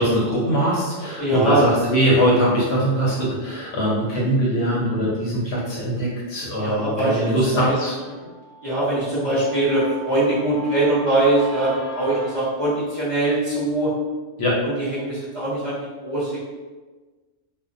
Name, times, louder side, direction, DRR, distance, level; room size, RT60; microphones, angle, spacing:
voice 1, 0.0-8.0 14.4-14.6, equal, 65° left, -5 dB, 0.8 m, -21 dB
voice 2, 1.2-1.6 6.5-7.8 8.6-13.9 14.6-16.5, right 2 dB, 35° right, -11 dB, 0.6 m, -22 dB
Guitar, 6.9-12.4, right 2 dB, 30° left, 0.7 m, -39 dB
2.6 x 2.0 x 2.5 m, 1.3 s
omnidirectional pair, 1.3 m